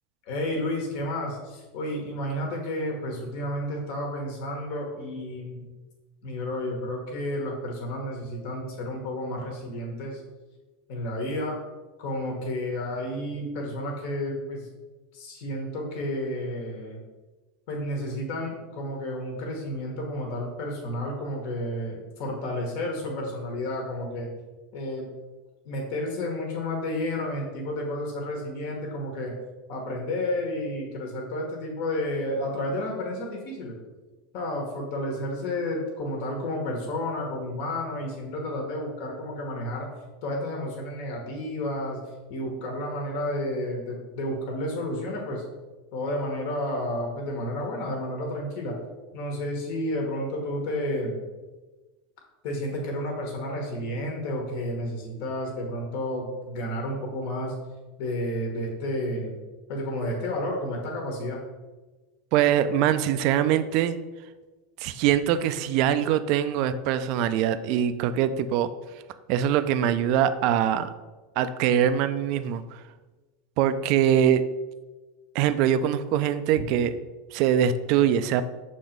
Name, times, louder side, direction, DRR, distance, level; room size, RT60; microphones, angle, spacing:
voice 1, 0.3-5.7 6.2-10.2 10.9-11.6 12.0-14.7 15.1-17.0 17.7-24.3 24.7-25.1 25.6-29.3 29.7-33.8 34.3-39.9 40.2-42.0 42.3-45.4 45.9-48.7 49.1-51.2 52.4-57.5 58.0-59.3 59.7-61.4, left 1 dB, 65° left, 0 dB, 1.3 m, -31 dB
voice 2, 62.3-64.0 64.8-68.7 69.3-70.9 71.4-72.8 73.6-74.4 75.3-76.9 77.3-78.4, right 10 dB, 60° right, 12 dB, 0.4 m, -23 dB
6.1 x 3.1 x 5.1 m, 1.2 s
hypercardioid pair, 105°, 0 cm